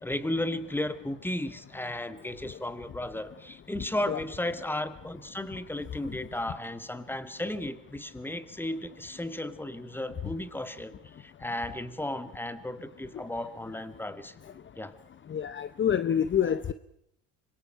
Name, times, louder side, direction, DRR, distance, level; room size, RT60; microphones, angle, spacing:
voice 1, 0.0-14.4 14.8-14.9, left 1 dB, 5° left, 12 dB, 1.8 m, -34 dB
voice 2, 15.3-16.7, left 8 dB, 30° left, 14 dB, 0.8 m, -27 dB
25.5 x 22.5 x 5.6 m, 0.77 s
supercardioid pair, 85°, 37 cm